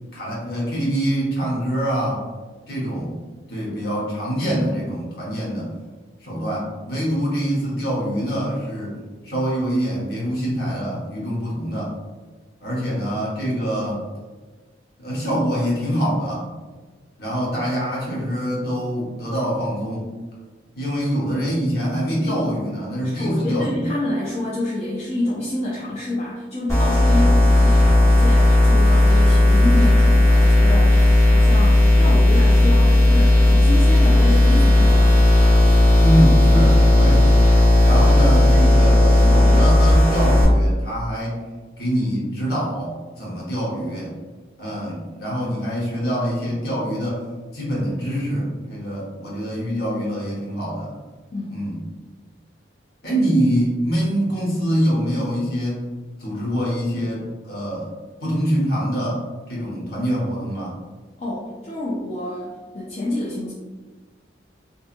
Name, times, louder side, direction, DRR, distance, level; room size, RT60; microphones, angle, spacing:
voice 1, 0.1-2.2 2.7-3.1 3.5-5.7 6.2-9.0 9.2-11.9 12.6-14.0 15.0-16.4 17.2-20.1 20.7-23.9 36.0-37.3 37.8-41.4 41.8-44.1 44.6-47.2 47.5-50.9 51.5-51.8 53.0-55.8 56.2-57.9 58.2-59.2 59.5-60.8, equal, 55° left, -5 dB, 0.9 m, -24 dB
voice 2, 23.0-35.2 51.3-51.6 61.2-63.5, left 1 dB, 35° left, -6 dB, 0.4 m, -28 dB
sound 1, 26.7-40.4, left 1 dB, 15° left, 0.8 m, -14 dB
2.7 x 2.4 x 2.4 m, 1.3 s
head